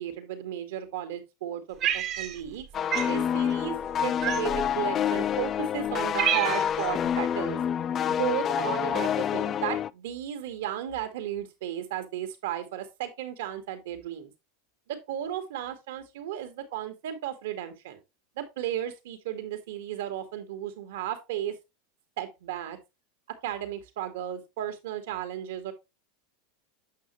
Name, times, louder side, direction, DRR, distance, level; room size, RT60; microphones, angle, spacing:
voice 1, 0.0-7.6 8.1-14.3 14.9-18.0 18.4-21.6 22.2-22.8 23.4-25.7, right 11 dB, 70° right, 1.9 m, -34 dB
Cat, 1.8-2.6 2.9-3.2 4.2-4.7 5.4-5.5 5.9-6.9, right 10 dB, 45° right, 1.4 m, -28 dB
sound 1, 2.7-9.9, left 9 dB, 35° left, 0.3 m, -28 dB
8.4 x 5.7 x 3.2 m
hypercardioid pair, 100°, 0 cm